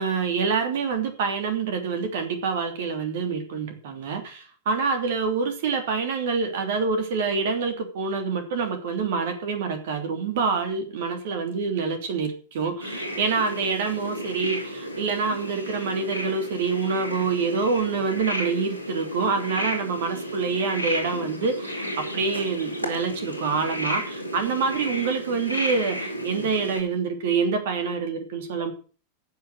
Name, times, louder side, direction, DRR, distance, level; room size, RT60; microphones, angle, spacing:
voice 1, 0.0-28.7, right 5 dB, 55° right, 6 dB, 3.1 m, -26 dB
sound 1, 12.8-26.8, equal, 90° right, 4.6 m, -33 dB
15.0 x 7.7 x 6.6 m, 0.38 s
figure-of-eight pair, 90°, 0 cm